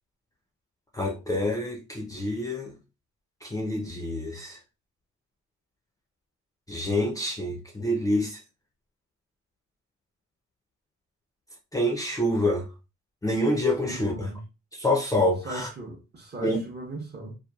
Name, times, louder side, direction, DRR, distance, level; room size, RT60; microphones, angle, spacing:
voice 1, 0.9-2.7 3.4-4.6 6.7-8.4 11.7-12.7 13.2-14.3 14.7-15.7 16.4-16.6, left 1 dB, 10° left, 0.5 m, -27 dB
voice 2, 13.8-14.4 15.4-17.4, right 2 dB, 35° right, 0.8 m, -38 dB
2.9 x 2.2 x 2.3 m
cardioid pair, 90°, 30 cm